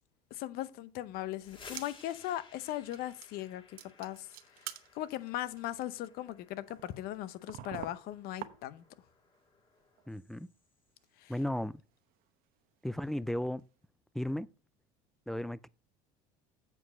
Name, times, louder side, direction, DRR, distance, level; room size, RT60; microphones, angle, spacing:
voice 1, 0.3-3.6 4.0-4.3 4.9-8.8 11.2-11.3, left 13 dB, 60° left, 0.8 m, -38 dB
sound 1, 1.1-10.9, left 4 dB, 30° left, 1.9 m, -58 dB
sound 2, 1.6-2.2 2.5-2.6 2.9-3.5 3.8-9.0 9.3-10.1 10.3-10.4 11.0-13.2 13.6-13.7, right 13 dB, 60° right, 0.9 m, -49 dB
voice 2, 10.1-10.5 11.3-11.8 12.8-13.6 14.1-14.5 15.3-15.7, left 1 dB, ahead, 0.3 m, -35 dB
8.1 x 4.8 x 5.6 m
supercardioid pair, 100°, 17 cm